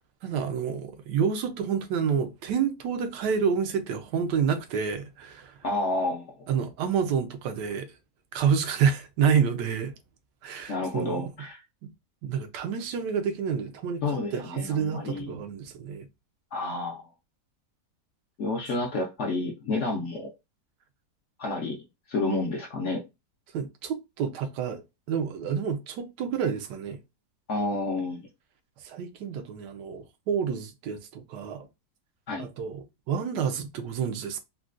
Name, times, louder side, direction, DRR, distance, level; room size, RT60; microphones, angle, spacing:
voice 1, 0.2-5.6 6.5-7.9 8.3-9.9 10.4-11.2 11.8-11.9 12.2-16.1 23.5-24.8 25.1-27.0 28.8-31.7 32.4-34.4, right 7 dB, 85° right, 1.3 m, -28 dB
voice 2, 5.6-6.5 10.7-11.6 14.0-15.3 16.5-17.1 18.4-20.3 21.4-21.8 22.1-23.0 27.5-28.2 32.3-32.5, left 2 dB, 65° left, 0.7 m, -30 dB
3.8 x 2.2 x 2.4 m
omnidirectional pair, 1.8 m